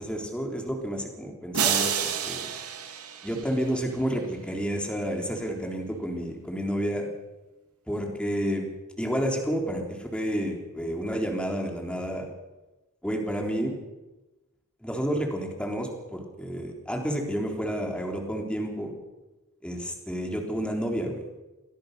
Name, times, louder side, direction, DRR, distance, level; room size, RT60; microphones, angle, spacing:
voice 1, 0.0-2.5 3.2-7.1 7.9-8.7 9.0-12.3 13.0-13.7 14.8-19.0 19.6-21.2, equal, 5° left, 1 dB, 3.6 m, -30 dB
sound 1, 1.5-3.9, right 8 dB, 75° right, 2.6 m, -29 dB
23.5 x 16.5 x 6.7 m, 1.1 s
head